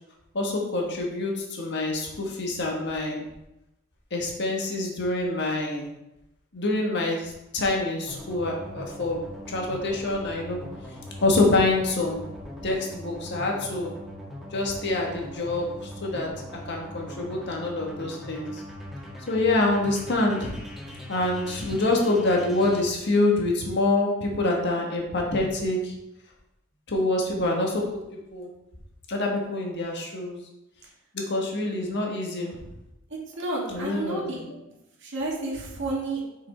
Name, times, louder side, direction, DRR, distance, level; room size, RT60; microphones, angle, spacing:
voice 1, 0.3-3.2 4.1-5.9 6.5-9.2 9.5-10.6 11.2-12.2 12.6-13.9 14.5-16.3 16.7-18.6 19.3-20.5 21.1-25.9 26.9-28.5 29.1-30.4 31.1-32.6 33.7-34.5, left 2 dB, 55° left, 0 dB, 1.5 m, -26 dB
sound 1, 8.1-22.8, left 1 dB, ahead, 1.7 m, -41 dB
voice 2, 33.1-34.4 35.0-36.2, right 2 dB, 60° right, -3 dB, 1.9 m, -31 dB
6.1 x 5.6 x 4.4 m, 0.90 s
head